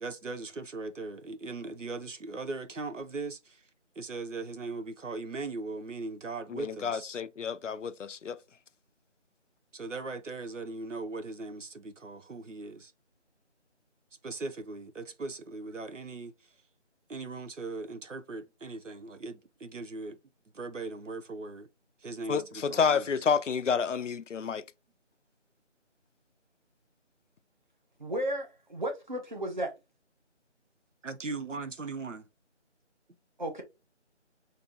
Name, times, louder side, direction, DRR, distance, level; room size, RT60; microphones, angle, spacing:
voice 1, 0.0-3.6 4.0-7.1 9.7-12.9 14.2-16.3 17.1-20.2 20.5-21.7 22.0-23.2 31.0-32.3, right 3 dB, 85° right, 0.8 m, -39 dB
voice 2, 6.5-8.4 22.3-24.6, left 6 dB, 85° left, 0.5 m, -29 dB
voice 3, 28.0-29.7 33.4-33.6, right 1 dB, 40° right, 0.9 m, -33 dB
4.2 x 2.7 x 2.8 m
figure-of-eight pair, 165°, 36 cm